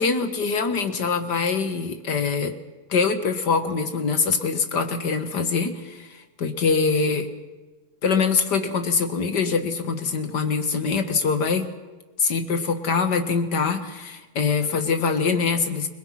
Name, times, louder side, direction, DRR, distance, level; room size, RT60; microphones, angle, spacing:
voice 1, 0.0-2.5 2.9-7.3 8.0-11.6 12.2-15.9, left 5 dB, 60° left, 8 dB, 2.4 m, -24 dB
29.5 x 21.5 x 5.9 m, 1.2 s
omnidirectional pair, 2.1 m